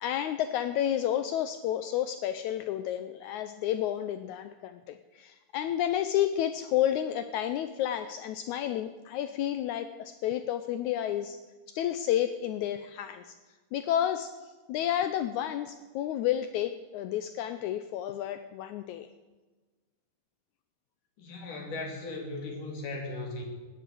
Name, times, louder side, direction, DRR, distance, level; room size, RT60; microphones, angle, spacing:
voice 1, 0.0-11.4 11.7-13.3 13.7-19.1, left 11 dB, 85° left, 10 dB, 1.7 m, -31 dB
voice 2, 21.2-23.4, left 2 dB, 65° left, 1 dB, 4.3 m, -37 dB
15.0 x 10.0 x 7.8 m, 1.3 s
omnidirectional pair, 4.1 m